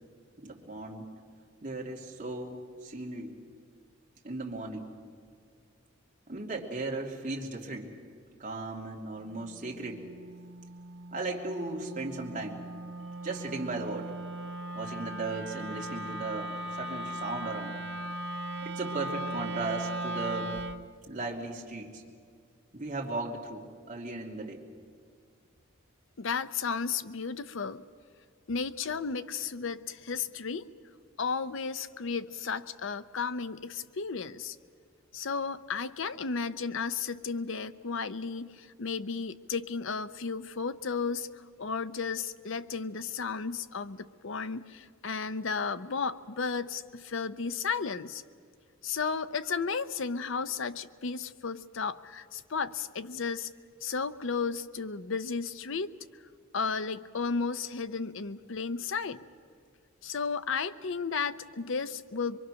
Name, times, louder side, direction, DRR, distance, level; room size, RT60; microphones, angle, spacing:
voice 1, 0.4-1.1 1.6-3.4 4.2-4.9 6.3-7.9 8.4-10.0 11.1-12.6 13.2-14.2 14.7-17.8 18.6-20.5 21.1-22.0 22.7-24.6, right 2 dB, 35° right, -2 dB, 2.6 m, -36 dB
Wind instrument woodwind instrument, 9.3-20.9, right 1 dB, 55° right, 0.8 m, -38 dB
voice 2, 26.2-27.8 28.5-30.7 31.2-34.6 35.1-48.2 48.8-53.5 53.8-55.9 56.5-59.2 60.0-62.4, left 5 dB, 60° left, 13 dB, 0.6 m, -33 dB
24.0 x 23.5 x 6.3 m, 2.1 s
head